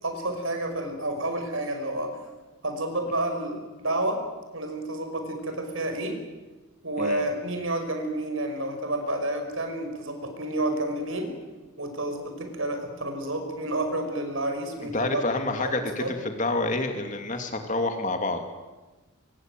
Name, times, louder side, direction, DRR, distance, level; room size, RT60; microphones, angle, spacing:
voice 1, 0.0-2.2 2.6-4.2 4.5-6.2 6.8-11.3 11.8-16.1, right 1 dB, 65° right, 6 dB, 5.8 m, -30 dB
voice 2, 14.9-18.5, left 2 dB, 35° left, 5 dB, 2.5 m, -28 dB
24.5 x 23.5 x 9.2 m, 1.2 s
head